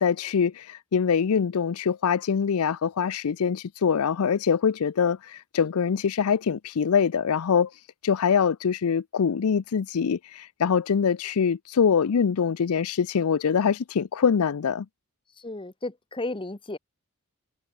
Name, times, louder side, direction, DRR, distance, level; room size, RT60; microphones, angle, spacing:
voice 1, 0.0-7.7 8.0-14.9, left 6 dB, 85° left, 0.5 m, -24 dB
voice 2, 15.4-16.8, left 2 dB, 25° left, 1.0 m, -34 dB
head